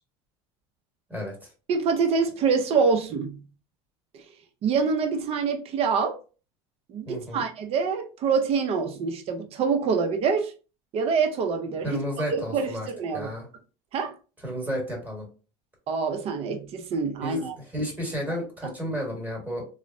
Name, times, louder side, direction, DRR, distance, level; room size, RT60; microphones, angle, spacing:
voice 1, 1.1-1.5 7.1-7.4 11.8-12.9 13.1-13.5 14.4-15.3 17.2-19.6, equal, 10° right, 1.3 m, -32 dB
voice 2, 1.7-3.4 4.1-4.2 4.6-6.2 6.9-10.5 10.9-12.0 12.5-13.3 13.9-14.1 15.9-17.6, right 5 dB, 45° right, 0.6 m, -25 dB
3.0 x 2.0 x 2.5 m
supercardioid pair, 110°, 14 cm